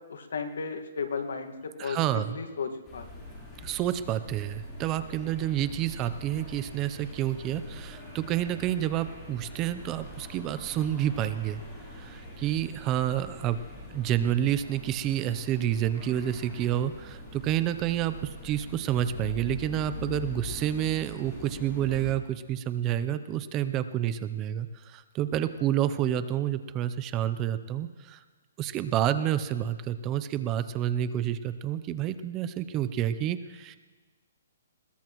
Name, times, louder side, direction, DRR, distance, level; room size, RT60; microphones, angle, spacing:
voice 1, 0.0-3.1, left 5 dB, 75° left, 7 dB, 1.7 m, -35 dB
voice 2, 1.8-2.4 3.6-11.6 11.9-13.6 13.9-28.2 28.6-33.8, right 11 dB, 20° right, 12 dB, 0.6 m, -29 dB
sound 1, 2.8-22.1, left 1 dB, 15° left, 3.8 m, -43 dB
21.0 x 17.5 x 3.1 m, 1.3 s
hypercardioid pair, 160°, 0 cm